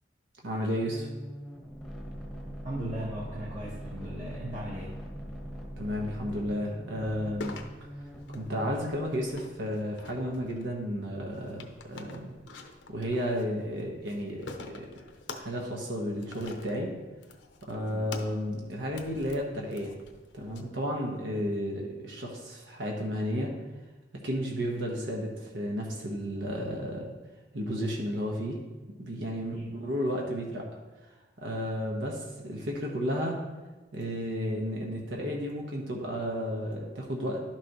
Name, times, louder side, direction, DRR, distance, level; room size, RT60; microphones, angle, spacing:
voice 1, 0.4-1.1 5.8-7.6 8.3-12.3 12.9-14.9 15.3-16.9 17.6-19.9 20.3-23.5 24.2-27.1 27.5-28.6 29.0-30.7 31.4-33.4 33.9-37.4, equal, 80° right, -1 dB, 1.2 m, -32 dB
sound 1, 0.8-9.4, equal, ahead, 1.0 m, -42 dB
voice 2, 2.6-4.9 17.8-18.1 29.5-29.6, right 1 dB, 40° right, -6 dB, 1.3 m, -37 dB
sound 2, 7.4-20.6, left 3 dB, 70° left, 0.7 m, -47 dB
11.5 x 6.0 x 3.0 m, 1.2 s
head